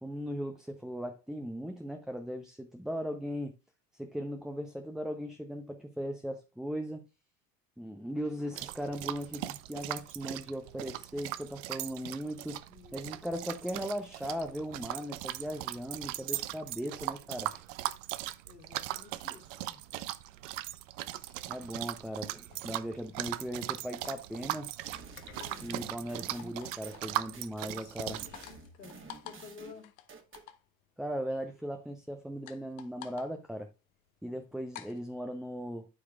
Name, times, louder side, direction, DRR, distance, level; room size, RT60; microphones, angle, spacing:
voice 1, 0.0-3.5 3.9-7.0 7.8-12.6 12.9-17.6 21.5-24.7 25.6-28.2 31.0-33.7 34.2-35.9, equal, ahead, 0.6 m, -38 dB
sound 1, 8.6-28.3, right 16 dB, 50° right, 0.7 m, -39 dB
voice 2, 12.6-13.7 18.4-19.8 21.2-21.4 25.3-25.7 27.5-29.9, left 6 dB, 75° left, 2.8 m, -53 dB
sound 2, 22.5-35.0, left 11 dB, 60° left, 1.0 m, -53 dB
sound 3, 24.8-27.7 28.1-30.5, right 4 dB, 25° right, 1.7 m, -51 dB
12.0 x 4.8 x 2.4 m
figure-of-eight pair, 75°, 48 cm